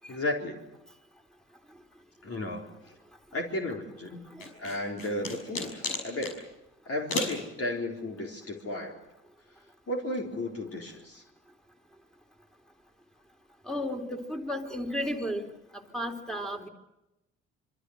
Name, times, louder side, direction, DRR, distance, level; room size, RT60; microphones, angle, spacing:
voice 1, 0.1-0.6 2.2-2.8 3.3-4.3 4.6-6.4 6.9-9.0 9.9-11.2, left 1 dB, 40° left, 1 dB, 4.1 m, -34 dB
sound 1, 4.4-6.4 7.1-7.4, left 3 dB, 70° left, 6.3 m, -33 dB
voice 2, 13.7-15.4 15.9-16.7, equal, ahead, 3 dB, 3.8 m, -33 dB
26.5 x 24.0 x 6.6 m, 0.93 s
hypercardioid pair, 50°, 34 cm